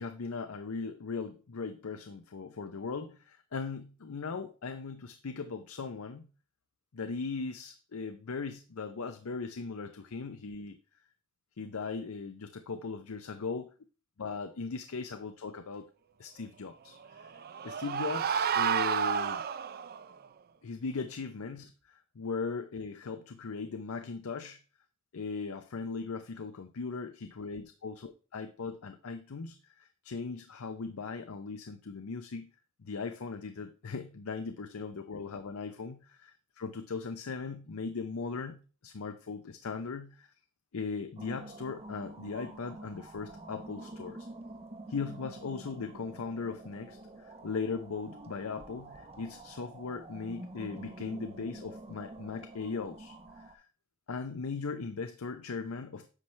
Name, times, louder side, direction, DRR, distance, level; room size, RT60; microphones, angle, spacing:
voice 1, 0.0-6.3 6.9-10.8 11.6-13.6 14.2-15.9 16.2-17.3 17.6-19.4 20.6-24.6 25.1-32.5 32.8-40.3 40.7-44.3 44.9-53.7 54.1-56.1, left 4 dB, 85° left, 8 dB, 0.6 m, -38 dB
sound 1, 17.1-20.0, right 7 dB, 45° right, 0.4 m, -31 dB
sound 2, 41.2-53.5, right 1 dB, 30° right, 0.8 m, -47 dB
9.8 x 5.9 x 3.2 m, 0.36 s
head